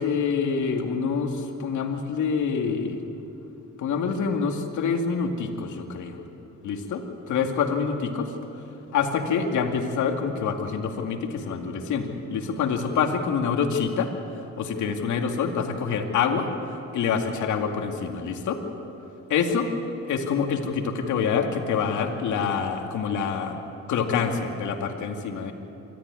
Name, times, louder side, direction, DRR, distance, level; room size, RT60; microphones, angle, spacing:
voice 1, 0.0-3.0 3.8-6.2 6.6-8.3 8.9-14.1 14.4-16.5 16.9-18.6 19.3-19.7 20.1-23.6 23.9-25.5, left 6 dB, 75° left, 4 dB, 2.3 m, -26 dB
25.5 x 13.5 x 9.7 m, 2.8 s
cardioid pair, 90°, 30 cm